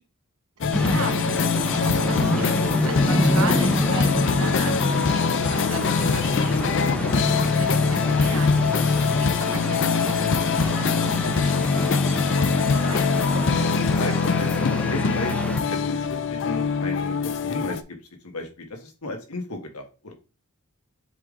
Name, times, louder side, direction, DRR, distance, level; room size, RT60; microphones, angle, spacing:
sound 1, 0.6-17.8, left 5 dB, 55° left, 0.5 m, -23 dB
sound 2, 0.7-15.6, equal, 5° left, 0.8 m, -29 dB
voice 1, 0.7-13.4, right 3 dB, 80° right, 5 dB, 1.3 m, -37 dB
voice 2, 14.0-17.2 17.4-18.0 18.2-20.1, left 2 dB, 90° left, 4 dB, 1.5 m, -34 dB
7.3 x 3.7 x 3.7 m, 0.33 s
head